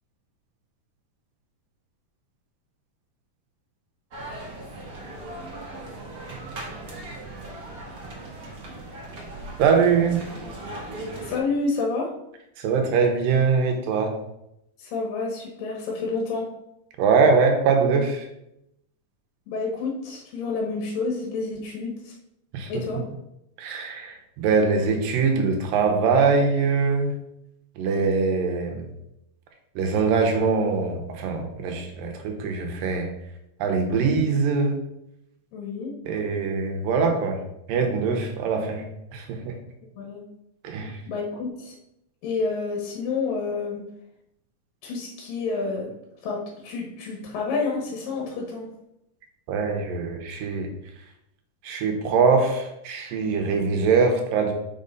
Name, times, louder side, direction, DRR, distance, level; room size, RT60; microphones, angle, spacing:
sound 1, 4.1-11.4, right 2 dB, 70° right, 0.8 m, -38 dB
voice 1, 9.6-10.2 12.6-14.1 17.0-18.2 22.5-22.7 23.6-27.1 27.8-28.8 29.8-33.1 33.6-34.8 36.1-37.4 37.7-38.8 39.1-39.4 40.6-41.0 49.5-50.7 51.6-54.5, right 5 dB, 85° right, 3 dB, 2.7 m, -22 dB
voice 2, 11.2-12.1 14.8-16.5 19.5-22.2 22.7-23.0 35.5-35.9 40.0-40.2 41.1-41.7 42.2-43.8 44.8-45.9 46.2-48.7, left 4 dB, 80° left, -1 dB, 2.8 m, -29 dB
6.0 x 5.5 x 3.9 m, 0.82 s
omnidirectional pair, 3.9 m